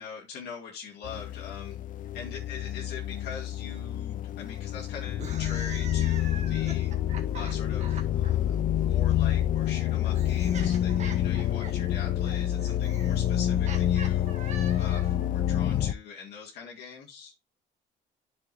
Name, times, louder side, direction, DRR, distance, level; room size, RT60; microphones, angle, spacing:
voice 1, 0.0-1.8 2.1-6.9 7.3-17.4, left 6 dB, 80° left, -1 dB, 2.1 m, -43 dB
sound 1, 1.0-15.9, left 11 dB, 50° left, 0.5 m, -27 dB
sound 2, 5.1-8.3 9.4-15.3, right 5 dB, 45° right, 1.7 m, -44 dB
9.7 x 6.6 x 2.6 m, 0.24 s
cardioid pair, 110°, 17 cm